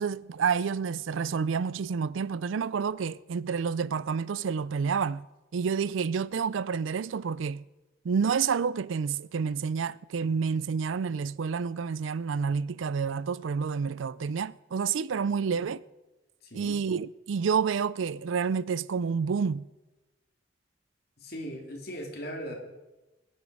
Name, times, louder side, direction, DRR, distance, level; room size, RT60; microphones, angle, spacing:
voice 1, 0.0-5.3 5.5-7.6 8.0-15.8 16.5-19.7, right 6 dB, 75° right, 0.4 m, -29 dB
voice 2, 16.4-16.8 21.2-22.5, equal, 50° left, 2.9 m, -39 dB
22.0 x 9.2 x 4.8 m
head